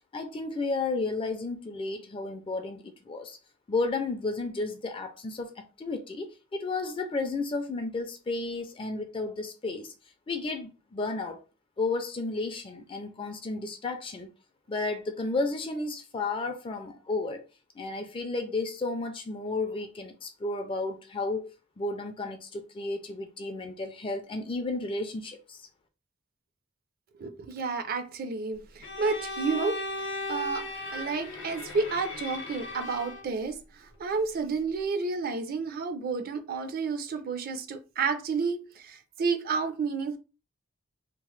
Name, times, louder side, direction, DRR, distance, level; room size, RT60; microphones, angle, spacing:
voice 1, 0.1-3.4 3.7-9.9 10.3-11.4 11.8-14.3 14.7-17.4 17.8-25.7, left 3 dB, 25° left, 0.4 m, -33 dB
voice 2, 27.2-29.8 30.3-30.6 30.9-33.6 34.0-40.2, right 4 dB, 45° right, 0.4 m, -30 dB
Bowed string instrument, 28.8-33.3, left 2 dB, 55° left, 0.7 m, -37 dB
2.9 x 2.0 x 3.1 m
head